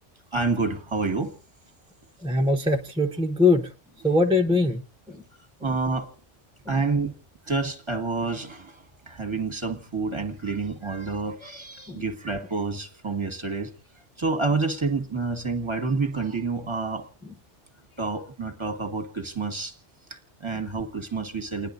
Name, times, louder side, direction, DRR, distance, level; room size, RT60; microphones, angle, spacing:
voice 1, 0.3-1.4 5.6-6.1 6.7-7.2 7.5-13.7 14.2-17.1 18.0-19.8 20.1-21.7, right 4 dB, 25° right, 1.4 m, -28 dB
voice 2, 2.2-3.7 4.0-4.8 5.1-5.2 6.7-6.8 11.9-12.0, left 2 dB, 5° right, 0.7 m, -22 dB
29.5 x 10.5 x 2.6 m
omnidirectional pair, 1.3 m